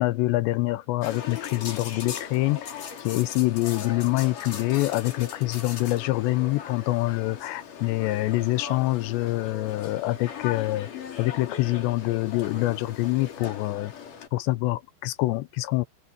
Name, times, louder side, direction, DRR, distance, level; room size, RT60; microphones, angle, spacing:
voice 1, 0.0-2.8 3.0-10.9 11.2-13.9 14.3-15.9, left 18 dB, 90° left, 2.9 m, -25 dB
sound 1, 1.0-14.3, left 7 dB, 50° left, 4.0 m, -38 dB
open air
omnidirectional pair, 5.1 m